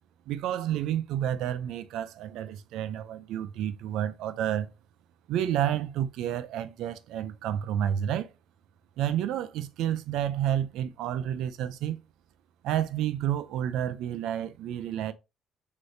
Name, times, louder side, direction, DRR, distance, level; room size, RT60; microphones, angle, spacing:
voice 1, 0.3-4.7 5.3-8.3 9.0-12.0 12.6-15.1, right 10 dB, 80° right, 0.5 m, -30 dB
6.4 x 3.0 x 2.7 m
cardioid pair, 150°, 0 cm